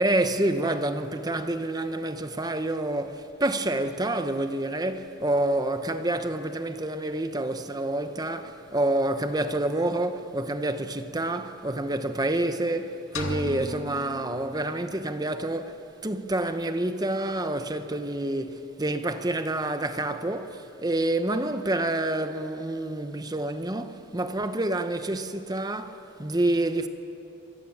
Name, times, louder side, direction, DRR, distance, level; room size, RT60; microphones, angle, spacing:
voice 1, 0.0-26.9, right 1 dB, 20° right, 0.9 m, -28 dB
sound 1, 13.2-15.1, left 1 dB, 75° left, 2.2 m, -36 dB
26.0 x 22.0 x 9.7 m
head